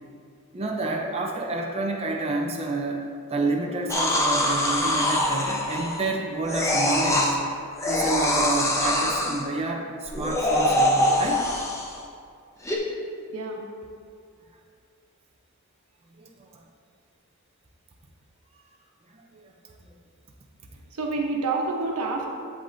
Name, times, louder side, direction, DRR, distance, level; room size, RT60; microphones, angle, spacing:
voice 1, 0.5-3.0 3.3-11.4 16.2-16.3 19.1-19.2, right 2 dB, 30° right, 0 dB, 0.5 m, -29 dB
sound 1, 3.9-6.1 6.5-7.3 7.8-9.4 10.1-12.0 12.6-12.8, left 1 dB, 15° left, 0.7 m, -24 dB
voice 2, 20.9-22.3, right 3 dB, 85° right, 0 dB, 1.0 m, -28 dB
8.4 x 7.4 x 2.6 m, 2.3 s
head